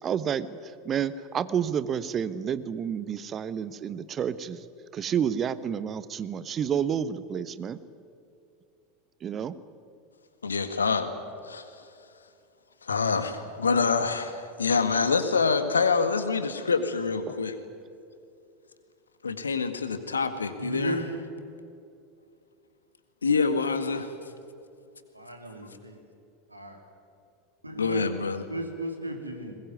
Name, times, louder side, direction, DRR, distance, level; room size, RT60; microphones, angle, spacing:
voice 1, 0.0-4.6 4.9-7.8 9.2-9.5, right 8 dB, 30° right, 15 dB, 1.0 m, -30 dB
voice 2, 10.4-11.1 11.4-11.8 12.8-17.6 19.2-21.0 23.2-24.1 27.8-28.4, left 5 dB, 80° left, 10 dB, 1.8 m, -26 dB
voice 3, 20.6-21.1 25.1-26.0 26.5-26.8 27.6-28.1 28.5-29.6, right 1 dB, 90° right, 4 dB, 3.2 m, -35 dB
21.0 x 21.0 x 9.5 m, 2.6 s
figure-of-eight pair, 80°, 0 cm